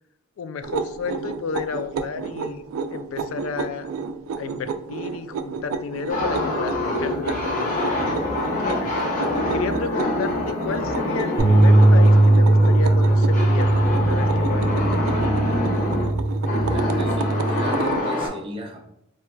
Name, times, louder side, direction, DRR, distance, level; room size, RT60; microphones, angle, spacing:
voice 1, 0.4-2.6 2.9-3.9 4.4-8.9 9.5-15.0, left 5 dB, 70° left, 11 dB, 0.3 m, -32 dB
sound 1, 0.6-18.1, right 5 dB, 90° right, 0.3 m, -32 dB
sound 2, 6.1-18.3, left 1 dB, 40° left, 1.0 m, -26 dB
sound 3, 11.4-17.6, right 1 dB, 20° left, 1.5 m, -18 dB
voice 2, 16.7-18.8, equal, 25° right, 0 dB, 0.6 m, -36 dB
4.5 x 2.9 x 2.2 m, 0.79 s
head